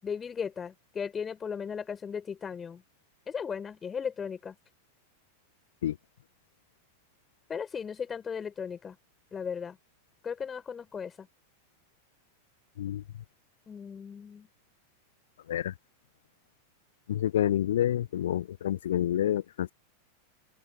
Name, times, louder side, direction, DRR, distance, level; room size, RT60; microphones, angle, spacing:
voice 1, 0.0-2.8 3.3-4.6 7.5-9.0 9.3-9.8 10.2-11.3 13.7-14.5, left 6 dB, 20° left, 6.9 m, -36 dB
voice 2, 17.1-19.7, left 11 dB, 60° left, 1.2 m, -28 dB
open air
figure-of-eight pair, 90°, 0 cm